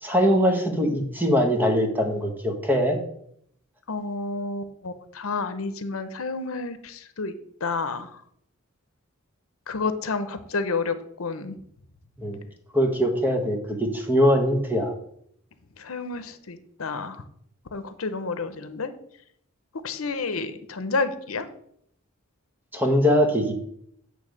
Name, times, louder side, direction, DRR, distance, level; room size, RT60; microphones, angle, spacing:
voice 1, 0.0-3.0 12.2-12.4 12.7-14.9 22.7-23.5, equal, 10° right, 4 dB, 1.1 m, -22 dB
voice 2, 3.9-7.3 7.6-8.1 9.7-11.6 15.8-17.2 17.7-18.9 19.8-21.5, left 4 dB, 80° left, 11 dB, 0.8 m, -30 dB
8.8 x 3.4 x 6.4 m, 0.68 s
head